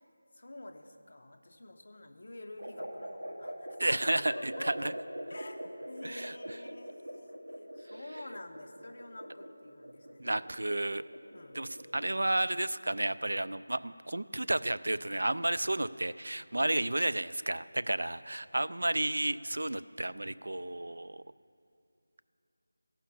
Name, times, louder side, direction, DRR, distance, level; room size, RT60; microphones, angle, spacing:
voice 1, 0.3-4.9 5.3-10.4 11.3-12.0, left 2 dB, 40° left, 6 dB, 0.6 m, -48 dB
sound 1, 2.6-12.2, right 1 dB, 60° right, 1.6 m, -44 dB
voice 2, 3.8-4.9 6.0-6.3 10.2-11.0 11.5-21.2, right 1 dB, 85° right, 14 dB, 0.3 m, -32 dB
14.5 x 5.7 x 7.0 m, 2.6 s
figure-of-eight pair, 180°, 0 cm